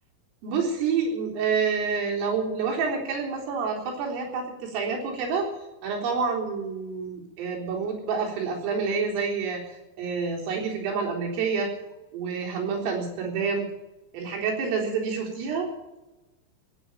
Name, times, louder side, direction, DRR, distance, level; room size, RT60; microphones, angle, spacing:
voice 1, 0.4-5.5 5.8-11.7 12.1-13.7 14.1-15.7, right 5 dB, 80° right, -1 dB, 6.3 m, -28 dB
17.5 x 8.9 x 9.1 m, 1.0 s
omnidirectional pair, 5.8 m